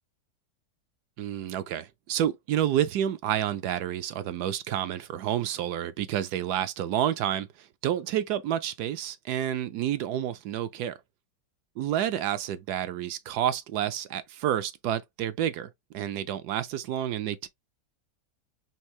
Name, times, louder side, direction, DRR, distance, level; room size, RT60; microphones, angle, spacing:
voice 1, 1.2-11.0 11.8-17.5, right 11 dB, 75° right, 1.1 m, -29 dB
4.6 x 3.3 x 3.1 m
omnidirectional pair, 1.8 m